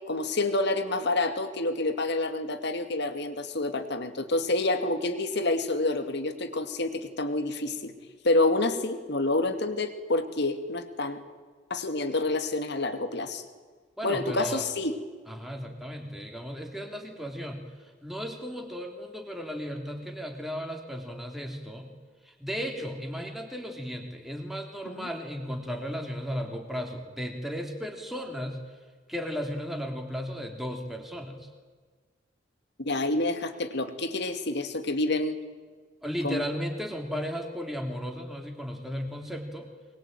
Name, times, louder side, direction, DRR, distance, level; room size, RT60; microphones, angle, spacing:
voice 1, 0.1-7.9 8.2-11.2 11.7-13.4 14.0-15.0 24.8-25.1 32.8-35.4 36.2-36.4, left 2 dB, 60° left, 8 dB, 2.4 m, -28 dB
voice 2, 14.0-14.7 15.3-21.9 22.2-28.6 29.1-31.5 36.0-39.7, equal, ahead, 3 dB, 3.5 m, -35 dB
23.5 x 21.5 x 9.3 m, 1.4 s
head